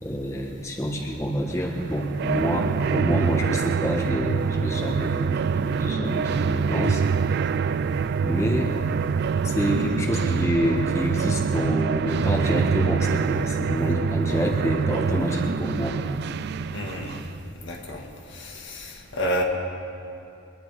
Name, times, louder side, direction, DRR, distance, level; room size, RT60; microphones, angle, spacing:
voice 1, 0.0-7.0 8.2-8.7 9.4-16.0, equal, 15° left, -2 dB, 1.4 m, -27 dB
sound 1, 1.6-17.4, right 6 dB, 50° right, 0.3 m, -25 dB
voice 2, 16.7-17.3 17.6-18.0 18.3-19.4, equal, 60° left, 0 dB, 1.8 m, -30 dB
24.0 x 10.5 x 4.8 m, 2.7 s
head